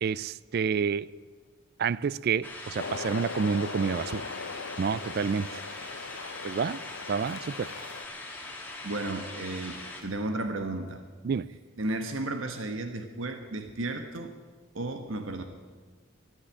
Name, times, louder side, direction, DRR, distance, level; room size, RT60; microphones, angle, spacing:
voice 1, 0.0-1.1 1.8-4.2 4.8-5.5 6.4-6.8 7.1-7.7 11.2-11.5, right 6 dB, 50° right, 20 dB, 0.3 m, -29 dB
sound 1, 2.4-10.0, left 2 dB, 10° left, 2.3 m, -41 dB
sound 2, 2.8-8.0, left 4 dB, 70° left, 0.8 m, -39 dB
voice 2, 8.8-11.0 11.8-14.3 14.7-15.4, right 2 dB, 80° right, 7 dB, 1.2 m, -33 dB
13.5 x 9.8 x 9.7 m, 1.4 s
head